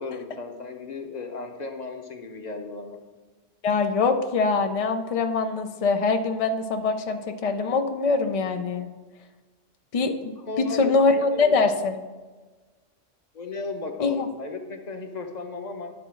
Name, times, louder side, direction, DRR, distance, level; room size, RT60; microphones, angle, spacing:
voice 1, 0.0-3.0 10.4-11.7 13.3-15.9, left 3 dB, 40° left, 5 dB, 0.8 m, -35 dB
voice 2, 3.6-8.9 9.9-12.0 14.0-14.3, left 4 dB, 70° left, 6 dB, 0.3 m, -23 dB
10.5 x 3.9 x 6.2 m, 1.3 s
omnidirectional pair, 1.3 m